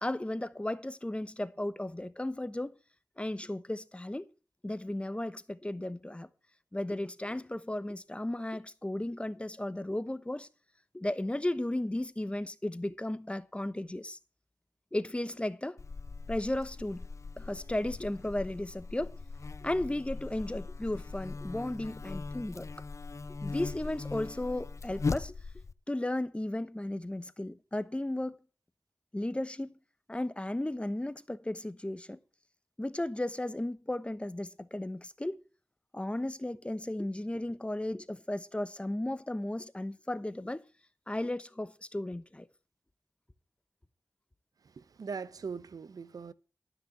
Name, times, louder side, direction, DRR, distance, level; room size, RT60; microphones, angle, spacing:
voice 1, 0.0-2.8 3.2-4.3 4.6-6.3 6.7-10.5 10.9-14.2 14.9-15.8 16.3-17.1 17.4-19.1 19.6-22.7 23.4-25.4 25.9-28.4 29.1-29.8 30.1-32.2 32.8-35.4 35.9-40.6 41.1-42.5, left 1 dB, 15° left, 1.0 m, -35 dB
Buzz, 15.8-25.7, left 4 dB, 50° left, 0.6 m, -39 dB
voice 2, 44.6-46.3, right 5 dB, 75° right, 0.7 m, -41 dB
13.0 x 6.0 x 7.5 m
cardioid pair, 50°, 6 cm